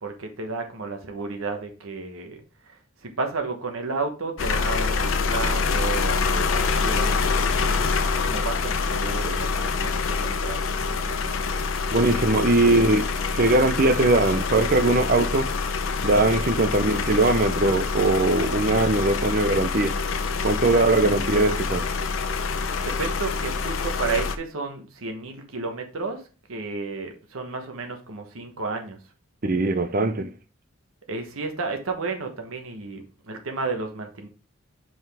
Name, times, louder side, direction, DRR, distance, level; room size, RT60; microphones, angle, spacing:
voice 1, 0.0-2.4 3.0-11.4 22.8-26.2 26.5-29.0 31.1-34.3, right 3 dB, 90° right, 1.2 m, -32 dB
sound 1, 4.4-24.4, left 4 dB, 75° left, 0.7 m, -26 dB
voice 2, 11.9-15.5 16.0-20.0 20.4-21.8 29.4-30.3, right 2 dB, 45° right, 0.6 m, -21 dB
5.9 x 5.2 x 3.4 m
head